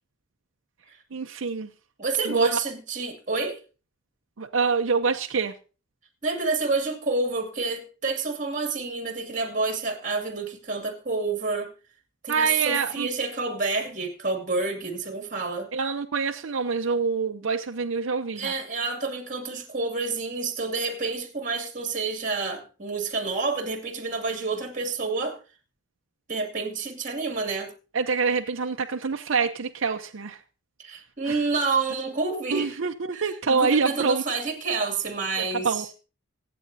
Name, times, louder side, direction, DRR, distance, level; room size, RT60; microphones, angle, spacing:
voice 1, 1.1-1.7 2.3-2.6 4.4-5.5 12.3-13.1 15.7-18.6 27.9-30.4 31.3-31.4 32.5-34.2 35.6-35.8, right 5 dB, 80° right, 0.7 m, -26 dB
voice 2, 2.0-3.6 6.2-11.7 12.2-15.7 18.4-25.4 26.3-27.7 30.8-32.8 33.1-35.9, right 3 dB, 40° right, 2.4 m, -29 dB
24.5 x 8.5 x 2.7 m
head